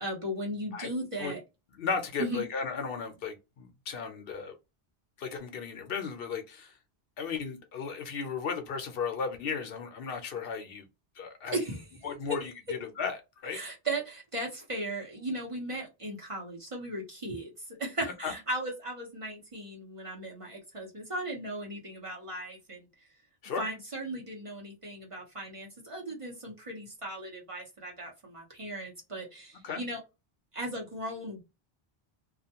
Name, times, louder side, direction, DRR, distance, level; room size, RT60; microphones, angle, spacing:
voice 1, 0.0-1.4 2.2-2.5 11.5-11.9 13.5-22.9 23.6-30.0 30.5-31.4, right 1 dB, 35° right, 0.9 m, -37 dB
voice 2, 1.8-4.5 5.2-6.7 7.2-10.8 11.2-11.6 12.0-13.6 18.2-18.3 23.4-23.6 29.6-29.8, left 5 dB, 70° left, 0.8 m, -35 dB
2.4 x 2.2 x 2.8 m
omnidirectional pair, 1.0 m